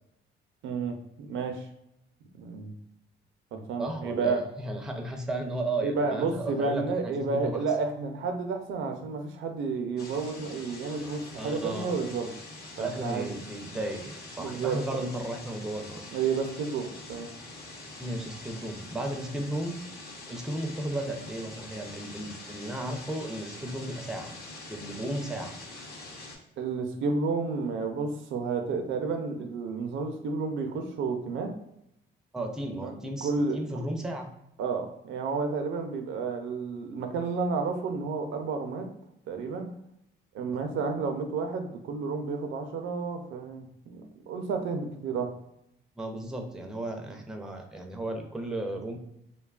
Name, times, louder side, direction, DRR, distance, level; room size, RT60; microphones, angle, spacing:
voice 1, 0.6-1.7 2.3-2.8 3.5-4.4 5.8-12.3 12.8-13.4 14.4-15.0 16.1-17.3 26.6-31.5 32.8-32.9 33.2-33.8 34.6-38.9 39.3-39.7 40.3-45.3, right 4 dB, 80° right, 5 dB, 0.4 m, -31 dB
voice 2, 3.8-7.6 11.4-11.9 12.8-16.0 18.0-19.8 20.3-24.3 24.7-25.5 32.3-34.3 40.5-40.6 46.0-49.0, right 1 dB, 5° right, 3 dB, 0.4 m, -34 dB
sound 1, 10.0-26.4, left 2 dB, 50° left, 0.7 m, -44 dB
2.8 x 2.2 x 2.3 m, 0.79 s
cardioid pair, 90°, 20 cm